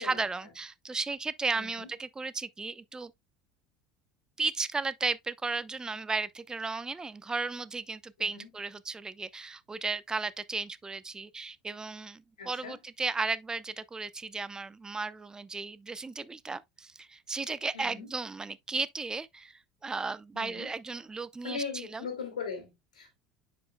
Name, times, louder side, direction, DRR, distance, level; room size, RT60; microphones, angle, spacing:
voice 1, 0.0-3.1 4.4-22.1, right 4 dB, 20° right, 0.7 m, -35 dB
voice 2, 1.5-1.9 8.3-8.5 12.4-12.8 17.7-18.1 20.3-20.7 21.4-23.2, left 5 dB, 90° left, 2.5 m, -39 dB
9.4 x 5.2 x 2.2 m
hypercardioid pair, 75°, 4 cm